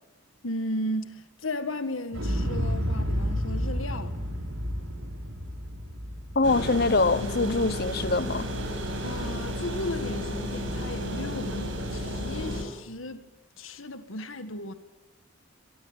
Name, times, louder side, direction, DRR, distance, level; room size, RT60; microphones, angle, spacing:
voice 1, 0.4-4.2 9.0-13.2 13.6-14.7, left 1 dB, 80° left, 2.0 m, -35 dB
Explosion, 2.1-8.2 8.5-8.6, equal, 80° right, 5.7 m, -31 dB
voice 2, 6.3-8.5, left 3 dB, 50° left, 1.0 m, -24 dB
sound 1, 6.4-12.6, equal, 65° right, 7.8 m, -32 dB
25.5 x 22.0 x 9.0 m
head